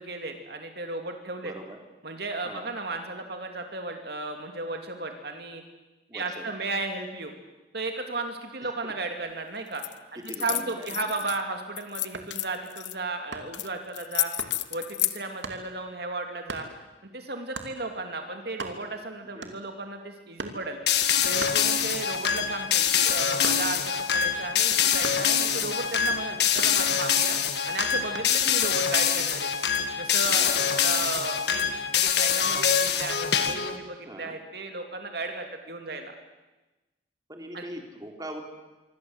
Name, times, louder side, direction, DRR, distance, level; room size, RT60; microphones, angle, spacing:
voice 1, 0.0-1.5 2.0-5.6 6.1-7.3 7.7-9.8 10.1-14.3 14.7-16.7 17.0-20.8 21.2-27.4 27.7-29.5 30.0-30.4 30.8-31.7 31.9-36.1 37.5-37.6, right 3 dB, 60° right, 5 dB, 2.7 m, -34 dB
voice 2, 1.4-1.8 2.4-2.7 6.1-6.4 8.6-8.9 10.1-10.9 19.3-19.5 25.4-25.7 30.3-31.0 34.1-34.4 37.3-38.4, right 1 dB, 20° right, 3 dB, 3.4 m, -41 dB
sound 1, 9.7-9.9 10.2-11.4 11.8-12.9 13.5-13.7 13.9-15.2, left 16 dB, 80° left, 1.1 m, -30 dB
sound 2, 12.0-12.4 13.3-13.7 14.4-14.6 15.4-15.7 16.5-16.7 17.5-17.8 18.2-18.3 18.5-19.0 19.4-19.8 20.4-20.7 21.4-22.1 22.5-23.9 25.0-25.4 26.6-27.2 28.2-28.4, right 3 dB, 80° right, 2.8 m, -39 dB
sound 3, 20.9-33.8, left 8 dB, 65° left, 1.9 m, -25 dB
26.0 x 24.5 x 8.0 m, 1.1 s
head